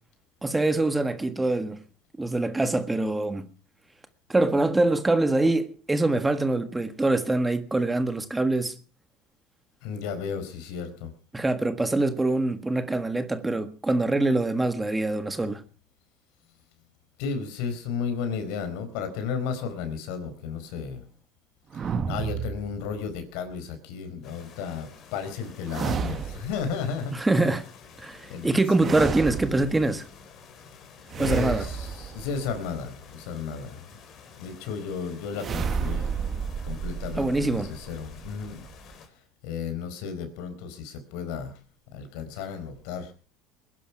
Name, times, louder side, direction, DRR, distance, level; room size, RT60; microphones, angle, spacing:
voice 1, 0.4-1.8 2.2-3.5 4.3-8.7 11.3-15.6 27.1-27.7 28.0-30.0 31.2-31.7 37.2-37.7, right 2 dB, 10° right, 1.5 m, -24 dB
voice 2, 9.8-11.1 17.2-21.0 21.7-27.1 28.3-28.9 31.2-33.8 34.4-36.1 36.7-38.6 39.4-41.5 41.9-43.1, left 6 dB, 70° left, 4.4 m, -33 dB
sound 1, 21.7-23.2 25.7-26.7 28.8-30.0 31.1-32.9 35.4-38.9, right 6 dB, 30° right, 1.2 m, -32 dB
sound 2, 24.2-39.1, left 6 dB, 45° left, 4.1 m, -50 dB
21.0 x 11.5 x 5.9 m
supercardioid pair, 125°, 0 cm